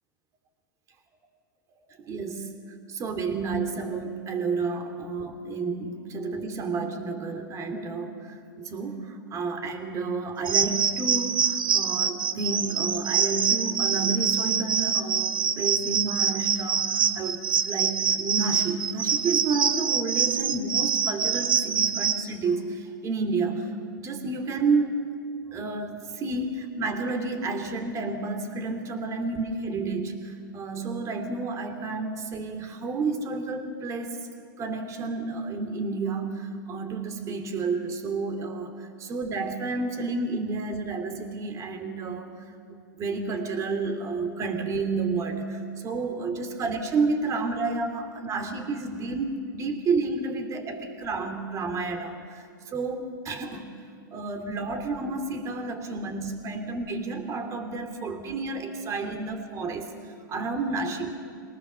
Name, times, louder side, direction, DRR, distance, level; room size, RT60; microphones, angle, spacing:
voice 1, 2.0-2.5 2.9-24.9 25.5-34.2 34.6-42.3 42.7-53.7 54.1-59.9 60.3-61.1, right 3 dB, 30° right, 6 dB, 2.7 m, -30 dB
sound 1, 10.5-22.2, right 7 dB, 90° right, 1.2 m, -25 dB
23.0 x 18.5 x 6.8 m, 2.3 s
hypercardioid pair, 120°, 11 cm